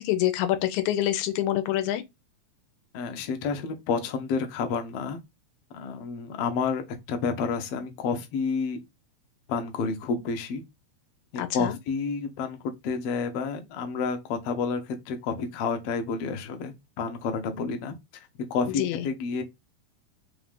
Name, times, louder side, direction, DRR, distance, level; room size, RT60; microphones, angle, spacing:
voice 1, 0.0-2.0 11.4-11.8 18.8-19.1, left 13 dB, 85° left, 2.0 m, -26 dB
voice 2, 2.9-5.2 5.7-8.8 9.5-10.6 11.3-19.4, left 5 dB, 65° left, 1.6 m, -30 dB
4.8 x 2.5 x 3.5 m
omnidirectional pair, 3.3 m